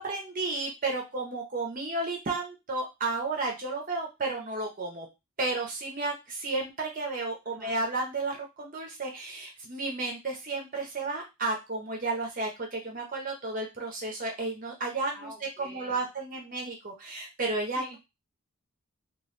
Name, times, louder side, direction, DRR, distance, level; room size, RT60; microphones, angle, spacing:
voice 1, 0.0-5.1 5.4-18.0, right 3 dB, 35° right, 1 dB, 0.6 m, -32 dB
voice 2, 7.5-7.8 15.1-16.1 17.8-18.0, equal, 5° left, -4 dB, 0.8 m, -47 dB
2.9 x 2.3 x 3.1 m, 0.24 s
head